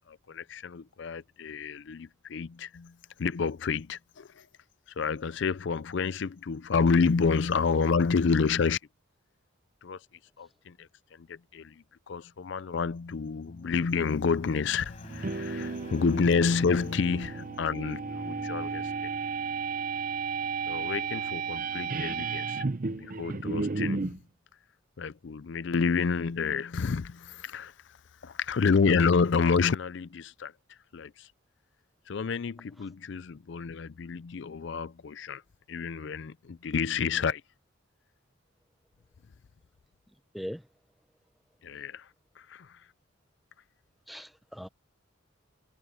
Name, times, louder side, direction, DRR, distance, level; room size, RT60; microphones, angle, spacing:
voice 1, 0.1-2.9 3.2-4.4 5.0-8.8 9.8-10.0 10.4-10.9 11.3-11.7 12.1-18.8 20.7-22.7 22.9-24.2 25.0-27.7 28.2-30.5 30.9-31.3 32.1-35.4 35.7-37.4 41.6-42.0 42.4-42.7, left 5 dB, 55° left, 0.4 m, -29 dB
sound 1, 13.5-20.1, left 1 dB, 30° left, 4.7 m, -49 dB
sound 2, 15.0-24.2, right 4 dB, 40° right, 0.6 m, -33 dB
voice 2, 40.1-40.7 44.1-44.7, equal, ahead, 0.6 m, -41 dB
head